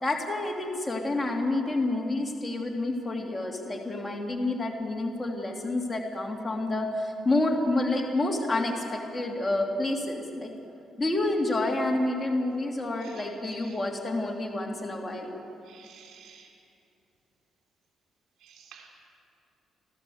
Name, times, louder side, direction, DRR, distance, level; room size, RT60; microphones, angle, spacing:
voice 1, 0.0-10.5 11.0-15.3, left 2 dB, 20° left, 0 dB, 2.7 m, -29 dB
voice 2, 15.7-16.5 18.4-18.9, right 7 dB, 80° right, -1 dB, 4.1 m, -51 dB
29.5 x 12.5 x 7.9 m, 2.6 s
cardioid pair, 90°, 0 cm